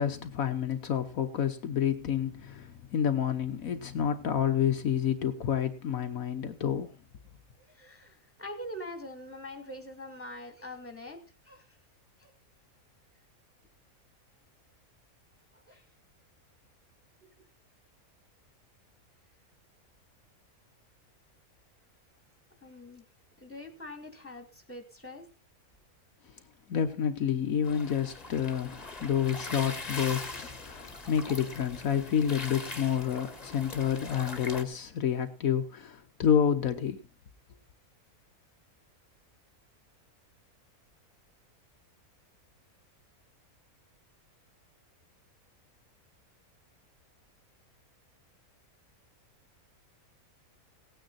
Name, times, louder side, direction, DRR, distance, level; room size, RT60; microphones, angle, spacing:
voice 1, 0.0-7.0 26.7-37.0, left 8 dB, 70° left, 1.4 m, -29 dB
voice 2, 7.7-11.2 11.4-11.7 12.2-12.3 15.7-15.8 22.6-23.0 23.4-25.2, left 1 dB, 10° left, 2.5 m, -43 dB
sound 1, 27.6-34.6, left 3 dB, 25° left, 1.7 m, -41 dB
17.5 x 9.2 x 4.2 m
omnidirectional pair, 1.5 m